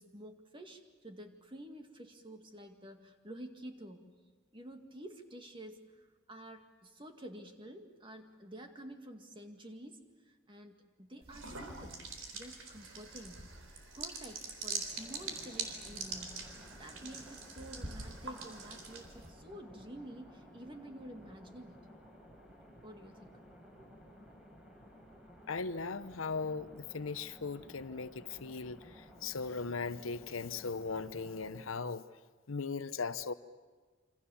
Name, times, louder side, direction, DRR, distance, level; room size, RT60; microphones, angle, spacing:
voice 1, 0.0-4.1 4.5-12.0 12.3-13.4 13.9-21.8 22.8-23.4 23.8-23.9, right 1 dB, 25° right, 2.1 m, -50 dB
sound 1, 11.2-19.3, right 4 dB, 85° right, 4.1 m, -43 dB
sound 2, 14.9-31.6, equal, 5° right, 4.6 m, -56 dB
voice 2, 25.5-32.0 32.5-33.3, left 4 dB, 85° left, 0.9 m, -38 dB
27.5 x 25.5 x 7.2 m
head